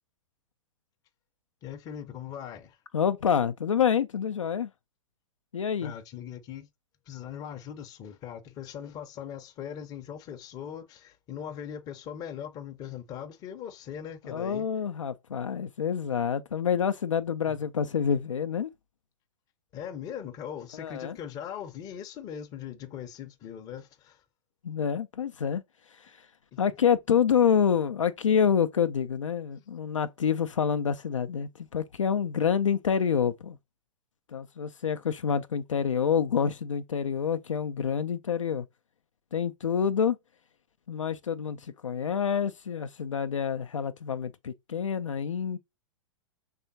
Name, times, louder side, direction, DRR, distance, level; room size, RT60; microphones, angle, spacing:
voice 1, 1.6-2.8 5.8-6.7 7.1-14.7 17.5-17.6 19.7-24.2 26.5-26.6, left 9 dB, 20° left, 0.6 m, -40 dB
voice 2, 2.9-4.7 5.5-5.9 14.2-18.7 20.8-21.2 24.6-25.6 25.9-26.3 26.6-33.6 34.3-38.7 39.3-40.2 40.9-45.6, left 7 dB, 70° left, 0.4 m, -27 dB
5.5 x 3.4 x 2.6 m
figure-of-eight pair, 105°, 17 cm